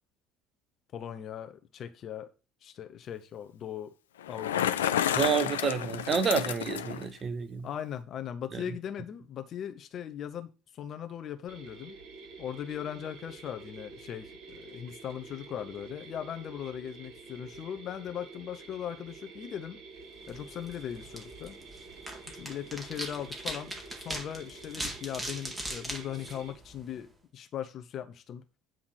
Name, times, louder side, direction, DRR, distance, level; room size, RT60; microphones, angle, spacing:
voice 1, 0.9-2.3 2.6-3.9 4.3-5.1 7.6-12.0 12.4-19.8 20.3-21.6 22.3-27.1 27.3-28.4, left 9 dB, 45° left, 0.9 m, -39 dB
Bicycle, 4.2-7.1, left 10 dB, 75° left, 0.3 m, -30 dB
voice 2, 5.2-7.7 8.5-8.8, right 6 dB, 35° right, 1.0 m, -29 dB
Mechanisms, 11.5-26.5, right 4 dB, 55° right, 4.4 m, -49 dB
sound 1, 20.2-27.1, right 1 dB, 15° right, 1.9 m, -41 dB
9.0 x 3.7 x 6.3 m
figure-of-eight pair, 60°, 0 cm